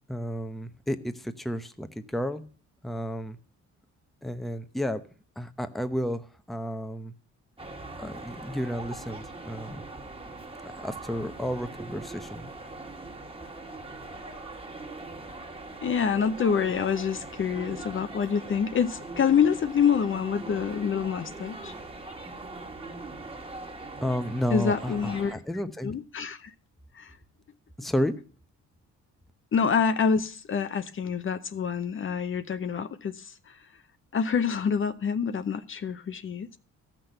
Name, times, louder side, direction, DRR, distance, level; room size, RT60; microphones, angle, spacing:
voice 1, 0.1-2.4 2.8-3.4 4.2-5.0 5.4-7.1 8.0-9.8 10.6-12.5 24.0-25.9 27.8-28.1, equal, ahead, 0.8 m, -32 dB
sound 1, 7.6-25.3, right 2 dB, 20° right, 1.9 m, -41 dB
voice 2, 15.8-21.7 24.5-25.4 25.8-26.5 26.9-27.2 29.5-33.6 34.1-36.6, left 6 dB, 45° left, 0.8 m, -27 dB
13.0 x 6.1 x 6.6 m
cardioid pair, 90°, 30 cm